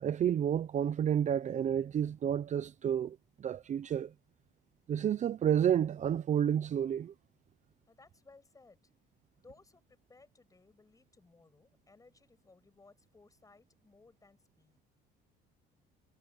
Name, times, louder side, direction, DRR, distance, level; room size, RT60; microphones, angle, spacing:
voice 1, 0.0-4.1 4.9-7.1, right 9 dB, 40° right, 0.7 m, -30 dB
voice 2, 7.9-8.8 9.4-14.8, left 3 dB, 15° left, 7.7 m, -61 dB
cardioid pair, 120°, 19 cm